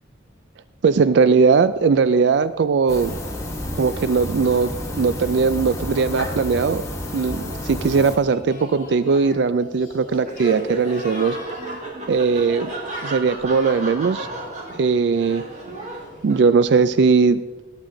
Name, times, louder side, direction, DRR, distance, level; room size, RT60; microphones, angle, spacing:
voice 1, 0.8-3.1 3.8-6.8 7.1-11.4 12.1-12.7 13.0-14.3 14.7-15.4 16.2-17.6, right 5 dB, 60° right, 14 dB, 0.3 m, -19 dB
sound 1, 2.9-8.2, left 1 dB, 15° left, 1.5 m, -30 dB
Singing, 7.9-16.2, left 1 dB, 45° left, 2.1 m, -41 dB
Laughter, 10.2-16.8, right 2 dB, 40° right, 1.9 m, -34 dB
17.5 x 7.4 x 3.8 m, 1.2 s
head